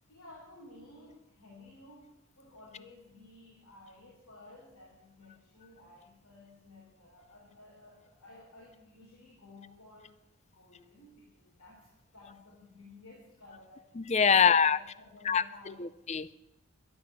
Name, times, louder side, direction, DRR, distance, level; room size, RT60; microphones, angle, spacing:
voice 1, 0.1-10.2 10.5-13.9 14.3-16.0, left 2 dB, 85° left, -4 dB, 3.9 m, -54 dB
voice 2, 14.0-14.8 15.3-15.4 15.8-16.3, left 6 dB, 30° left, 16 dB, 0.4 m, -24 dB
12.5 x 10.5 x 7.0 m, 0.89 s
head